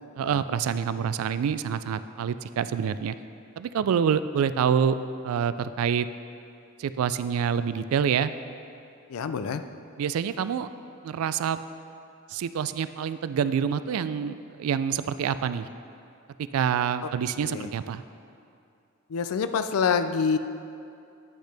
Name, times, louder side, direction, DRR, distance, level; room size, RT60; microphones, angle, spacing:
voice 1, 0.2-3.1 3.6-5.0 5.2-6.1 6.8-8.3 10.0-10.7 11.0-11.6 12.3-15.7 16.4-18.0, right 7 dB, 75° right, 14 dB, 0.3 m, -27 dB
voice 2, 9.1-9.6 17.0-17.1 17.4-17.7 19.1-20.4, left 6 dB, 85° left, 10 dB, 0.4 m, -27 dB
9.8 x 6.4 x 3.4 m, 2.5 s
head